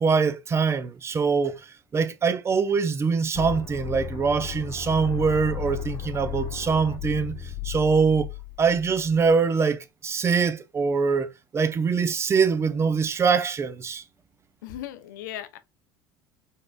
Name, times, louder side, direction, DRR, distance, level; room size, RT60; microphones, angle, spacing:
voice 1, 0.0-1.7 1.9-7.4 7.6-8.3 8.6-11.3 11.5-14.0, right 5 dB, 25° right, 0.5 m, -23 dB
sound 1, 3.3-9.3, left 10 dB, 40° left, 1.1 m, -35 dB
voice 2, 14.6-15.6, left 12 dB, 65° left, 0.5 m, -37 dB
3.9 x 3.5 x 2.4 m
figure-of-eight pair, 65°, 11 cm